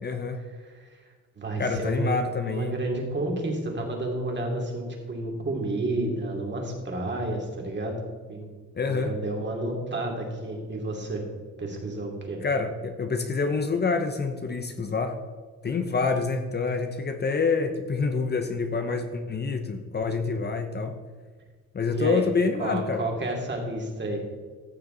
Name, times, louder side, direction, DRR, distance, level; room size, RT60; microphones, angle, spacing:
voice 1, 0.0-0.4 1.6-2.7 8.7-9.1 12.4-15.2 15.6-20.9 21.7-23.0, left 4 dB, 35° left, 6 dB, 0.9 m, -27 dB
voice 2, 0.6-1.1 1.4-8.0 8.3-8.5 8.8-11.2 11.6-12.4 21.9-22.3 22.6-24.2, right 2 dB, 35° right, 1 dB, 2.8 m, -31 dB
14.5 x 6.8 x 3.9 m, 1.5 s
cardioid pair, 90°, 30 cm